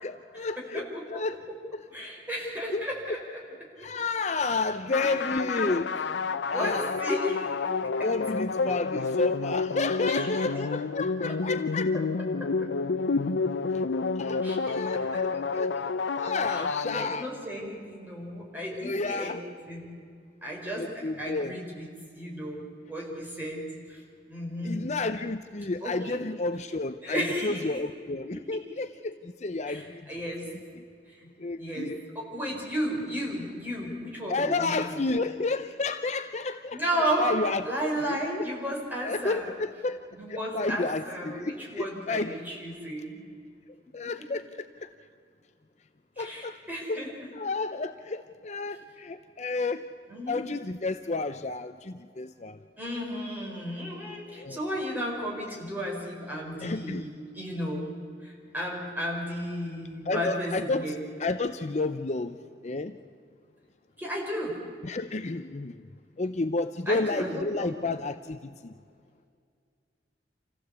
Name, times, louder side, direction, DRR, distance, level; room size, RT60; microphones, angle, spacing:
voice 1, 0.0-1.4 2.7-2.9 3.8-5.9 6.5-7.0 8.0-11.9 13.7-13.8 14.2-15.7 16.2-17.3 18.7-19.4 20.8-21.5 24.6-30.1 30.5-30.8 31.4-32.0 34.3-36.8 37.2-37.6 38.0-38.5 39.0-40.0 40.3-42.3 43.9-44.9 46.2-46.6 46.9-47.0 47.3-49.9 50.3-52.6 54.3-54.6 56.6-57.1 60.1-60.9 61.2-62.4 62.6-63.0 64.8-65.9 66.2-68.7, left 3 dB, 40° left, 10 dB, 0.6 m, -31 dB
voice 2, 0.6-1.2 1.9-3.2 3.8-3.9 4.9-5.7 6.5-7.6 9.9-10.3 12.4-12.7 14.4-14.9 15.1-15.4 16.5-16.6 16.9-19.9 20.4-22.6 22.9-24.0 24.3-24.9 25.8-26.2 27.0-27.8 29.6-30.5 31.2-31.3 31.6-35.0 36.7-37.4 37.6-39.4 40.1-43.2 46.2-47.1 50.1-50.4 52.8-57.9 58.2-61.0 64.0-64.6 66.9-67.8, equal, 10° right, -3 dB, 4.9 m, -34 dB
sound 1, 4.9-17.5, left 4 dB, 85° left, 0.6 m, -29 dB
26.5 x 16.0 x 8.2 m, 2.2 s
head